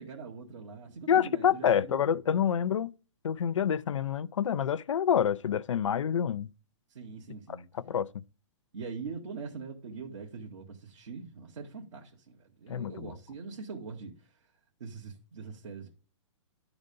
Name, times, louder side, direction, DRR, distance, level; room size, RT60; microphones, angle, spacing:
voice 1, 0.0-2.2 6.9-7.6 8.7-14.3 14.8-15.9, right 5 dB, 75° right, 1.8 m, -43 dB
voice 2, 1.1-2.9 3.2-6.5 7.9-8.1 12.7-13.1, left 8 dB, 85° left, 0.4 m, -27 dB
11.0 x 4.0 x 5.1 m
hypercardioid pair, 135°, 16 cm